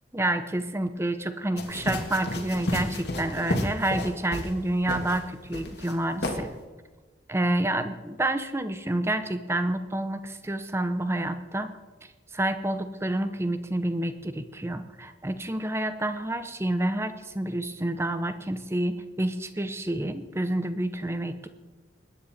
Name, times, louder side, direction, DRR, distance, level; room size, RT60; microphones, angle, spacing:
voice 1, 0.1-6.5 7.3-11.7 12.3-21.5, right 1 dB, 15° right, 10 dB, 0.7 m, -28 dB
sound 1, 1.6-4.6 4.9-5.2 5.5-5.9 6.2-6.4, left 1 dB, 60° left, 1.8 m, -31 dB
21.0 x 9.7 x 4.2 m, 1.3 s
head